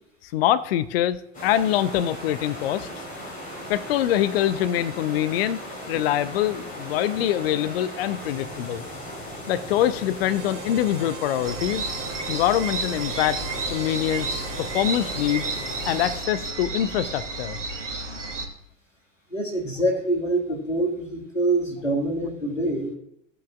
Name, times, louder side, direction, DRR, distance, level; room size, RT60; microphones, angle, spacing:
voice 1, 0.2-2.9 3.7-5.6 5.9-8.8 9.5-11.9 12.3-13.4 13.7-15.5 15.9-17.6, left 12 dB, 55° left, 15 dB, 0.5 m, -24 dB
sound 1, 1.3-16.2, equal, 20° left, 4.2 m, -37 dB
Harmonica, 10.2-16.2, right 13 dB, 50° right, 0.8 m, -42 dB
sound 2, 11.4-18.4, right 3 dB, 75° right, 1.5 m, -32 dB
voice 2, 19.3-22.9, right 1 dB, 90° left, 1 dB, 2.1 m, -25 dB
15.5 x 7.7 x 2.4 m, 0.75 s
figure-of-eight pair, 80°, 37 cm